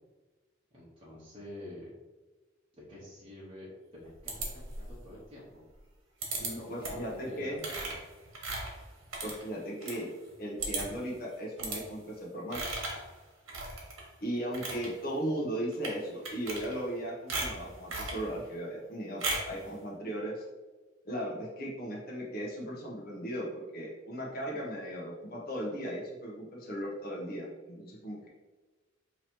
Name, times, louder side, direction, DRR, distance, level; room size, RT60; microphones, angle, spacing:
voice 1, 0.7-1.9 2.9-5.6 6.6-8.0, left 1 dB, 30° right, -8 dB, 1.0 m, -47 dB
sound 1, 4.3-5.0 6.2-6.5 6.8-7.1 7.6-10.0 10.3-10.4 10.6-11.1 11.6-11.8 12.5-13.0 13.5-14.0 14.4-14.9 15.7-16.0 16.2-17.0 17.3-18.2 19.2-19.6, right 2 dB, 90° right, 1.1 m, -36 dB
voice 2, 6.4-7.6 9.2-10.1 10.4-12.8 14.2-20.4 21.0-28.3, equal, 50° left, -4 dB, 0.9 m, -37 dB
3.0 x 2.8 x 4.4 m, 1.2 s
head